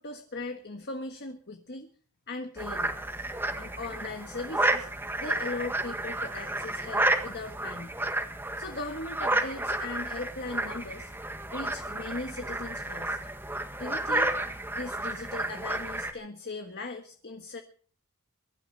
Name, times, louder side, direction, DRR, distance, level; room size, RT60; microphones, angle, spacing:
voice 1, 0.0-1.9 2.3-2.9 3.5-4.9 5.2-7.9 8.6-11.1 11.5-13.2 13.8-14.3 14.7-17.6, left 2 dB, 50° left, 5 dB, 1.5 m, -38 dB
sound 1, 2.6-16.1, right 1 dB, 10° right, 1.7 m, -31 dB
23.0 x 12.0 x 4.3 m, 0.43 s
head